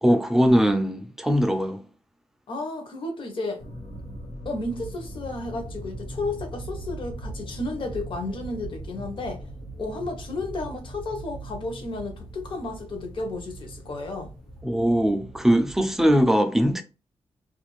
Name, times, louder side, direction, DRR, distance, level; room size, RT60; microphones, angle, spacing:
voice 1, 0.0-1.8 14.6-16.8, equal, 5° right, 0.4 m, -21 dB
voice 2, 2.5-3.6 4.4-9.4 9.8-14.3, left 2 dB, 55° left, 0.8 m, -32 dB
sound 1, 3.6-16.3, right 1 dB, 90° left, 1.3 m, -40 dB
2.4 x 2.4 x 3.0 m
wide cardioid pair, 145°, 10 cm